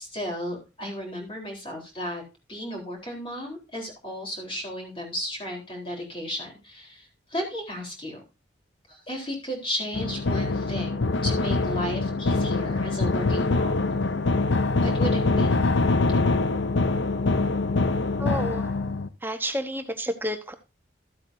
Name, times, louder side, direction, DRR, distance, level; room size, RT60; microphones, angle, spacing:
voice 1, 0.0-2.2 2.5-8.2 8.9-13.9 14.8-15.6, equal, 30° left, 1 dB, 3.9 m, -34 dB
sound 1, 9.9-19.1, left 3 dB, 85° left, 0.7 m, -24 dB
voice 2, 18.2-18.7 19.2-20.5, equal, 10° right, 7 dB, 1.0 m, -30 dB
14.0 x 8.1 x 2.7 m, 0.29 s
head